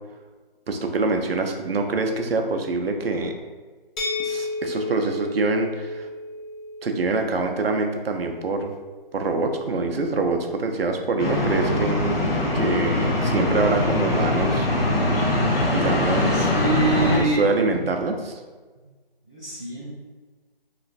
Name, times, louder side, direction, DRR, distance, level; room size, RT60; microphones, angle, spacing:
voice 1, 0.7-3.3 4.2-6.1 6.8-8.7 9.1-14.7 15.2-15.4 15.7-16.5 17.0-18.4, right 3 dB, 80° right, 4 dB, 0.5 m, -25 dB
sound 1, 4.0-9.7, left 2 dB, 55° left, 0.6 m, -34 dB
sound 2, 11.2-17.2, left 1 dB, 75° left, 1.0 m, -22 dB
voice 2, 16.3-17.6 19.2-20.0, right 1 dB, 20° left, -17 dB, 0.8 m, -25 dB
3.0 x 2.5 x 2.5 m, 1.4 s
figure-of-eight pair, 175°, 29 cm